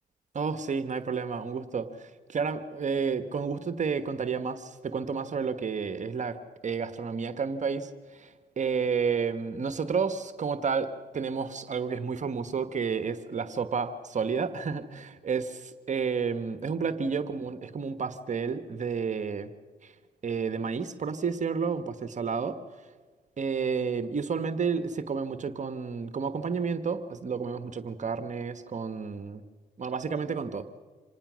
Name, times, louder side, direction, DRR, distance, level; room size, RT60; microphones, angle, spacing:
voice 1, 0.3-6.4 6.6-19.5 19.8-19.9 20.2-22.6 23.4-29.4 29.8-30.6, right 5 dB, 45° right, 10 dB, 1.4 m, -31 dB
26.5 x 19.0 x 6.3 m, 1.4 s
cardioid pair, 70°, 17 cm